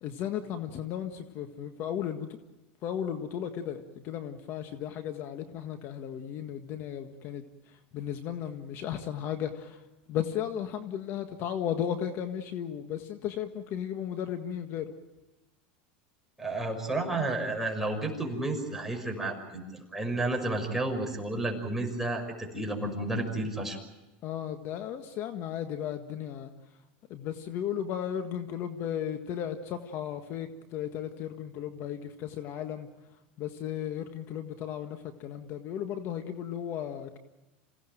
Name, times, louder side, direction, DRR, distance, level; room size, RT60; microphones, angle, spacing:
voice 1, 0.0-2.3 2.8-7.4 7.9-9.8 10.1-14.9 24.2-26.5 27.1-32.9 33.4-37.2, left 9 dB, 50° left, 7 dB, 1.7 m, -35 dB
voice 2, 16.4-23.8, right 2 dB, 5° right, 2 dB, 6.0 m, -31 dB
27.5 x 17.5 x 9.2 m, 1.0 s
supercardioid pair, 120°, 5 cm